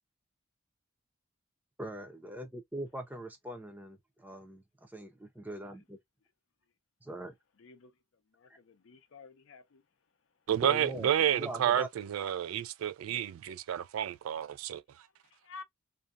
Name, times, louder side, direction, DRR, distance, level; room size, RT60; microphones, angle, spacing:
voice 1, 1.8-6.0 7.0-7.4 10.6-11.9, right 1 dB, 10° right, 0.5 m, -42 dB
voice 2, 7.6-8.0 8.3-9.9 15.2-15.6, left 4 dB, 70° left, 0.5 m, -51 dB
voice 3, 10.5-14.8, right 10 dB, 85° right, 0.3 m, -30 dB
2.6 x 2.1 x 2.3 m
head